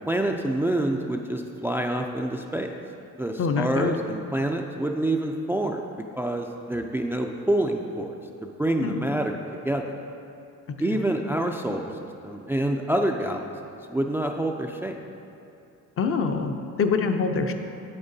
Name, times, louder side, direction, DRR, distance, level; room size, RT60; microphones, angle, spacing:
voice 1, 0.1-2.7 3.2-8.1 8.4-9.4 9.6-9.8 10.8-15.0, right 1 dB, 10° right, 3 dB, 0.3 m, -27 dB
voice 2, 3.4-4.0 8.8-9.1 10.9-11.0 16.0-17.5, left 5 dB, 45° left, 5 dB, 0.6 m, -25 dB
8.8 x 7.8 x 2.7 m, 2.7 s
cardioid pair, 90°, 30 cm